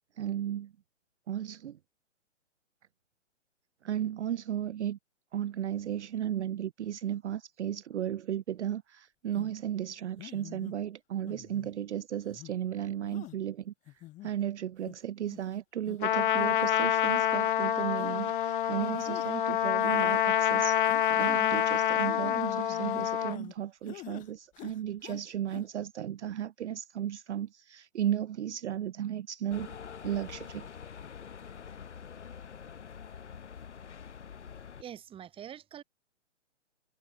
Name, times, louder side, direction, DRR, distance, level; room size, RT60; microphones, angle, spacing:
voice 1, 0.2-0.7 1.3-1.8 3.8-5.0 5.3-20.8 21.1-29.8 30.0-30.7, right 10 dB, 65° right, 0.5 m, -35 dB
sound 1, 9.4-9.5 10.2-10.7 11.3-11.7 12.3-12.5 13.1-13.4 13.9-14.3 14.9-15.0 15.3-15.5 15.9-16.0 16.4-16.7 17.1-17.2 18.0-18.2 18.8-19.3 19.8-20.2 20.8-21.6 22.0-23.5 23.9-24.3 24.5-25.2 25.5-25.6, left 16 dB, 20° left, 2.7 m, -46 dB
Trumpet, 16.0-23.4, left 11 dB, 45° left, 0.6 m, -27 dB
sound 2, 29.5-34.8, left 7 dB, 65° left, 1.5 m, -45 dB
voice 2, 34.8-35.8, right 10 dB, 15° right, 3.1 m, -45 dB
figure-of-eight pair, 125°, 37 cm